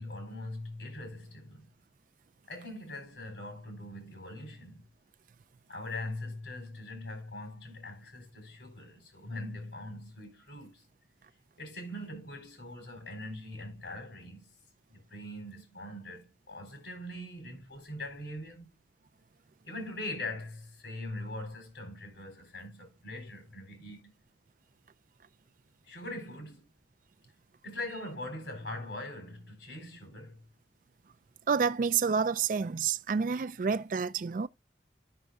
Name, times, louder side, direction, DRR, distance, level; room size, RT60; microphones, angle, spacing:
voice 1, 0.0-1.7 2.5-4.8 5.7-10.8 11.6-14.5 14.9-18.7 19.6-24.1 25.8-26.7 27.6-30.4, left 1 dB, 85° left, 4.2 m, -42 dB
voice 2, 31.5-34.5, right 6 dB, 45° right, 0.4 m, -29 dB
13.0 x 6.3 x 2.3 m
head